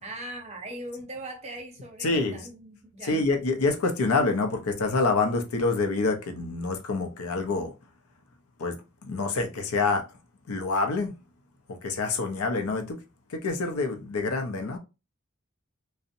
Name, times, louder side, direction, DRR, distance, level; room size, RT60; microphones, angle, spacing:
voice 1, 0.0-3.2, right 1 dB, 30° right, 0.6 m, -40 dB
voice 2, 2.0-2.4 3.0-7.7 8.6-10.0 10.5-11.1 11.8-13.0 13.3-14.8, left 3 dB, 80° left, 0.5 m, -27 dB
2.6 x 2.0 x 2.6 m
head